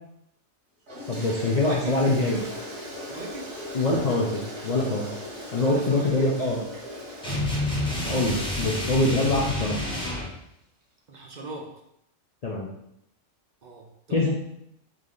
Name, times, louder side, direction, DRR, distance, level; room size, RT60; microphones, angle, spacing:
Toilet flush, 0.9-10.2, equal, 85° right, 1.7 m, -39 dB
voice 1, 1.1-2.4 3.7-5.1 5.5-6.6 8.0-9.8 12.4-12.7 14.1-14.3, left 2 dB, 55° left, -3 dB, 0.4 m, -24 dB
voice 2, 1.6-2.1 3.1-3.5 5.6-6.3 11.1-11.7 13.6-14.3, right 3 dB, 50° right, 0 dB, 0.5 m, -39 dB
sound 1, 7.2-10.3, left 1 dB, 5° left, 0.8 m, -28 dB
3.7 x 3.2 x 3.8 m, 0.78 s
omnidirectional pair, 1.3 m